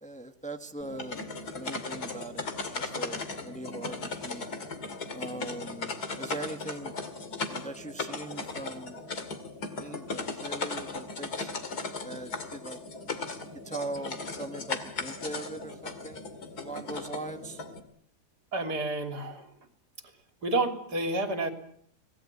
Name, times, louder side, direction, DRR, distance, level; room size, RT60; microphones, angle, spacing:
voice 1, 0.0-1.2 1.5-4.5 5.1-7.0 7.4-9.0 9.8-11.5 12.0-12.8 13.6-16.3 16.6-17.6, right 2 dB, 5° left, 7 dB, 1.4 m, -40 dB
sound 1, 0.8-17.8, left 3 dB, 70° left, 2.9 m, -37 dB
voice 2, 18.5-19.5 20.4-21.5, right 2 dB, 75° right, 6 dB, 3.8 m, -29 dB
25.0 x 18.5 x 9.8 m, 0.69 s
omnidirectional pair, 1.7 m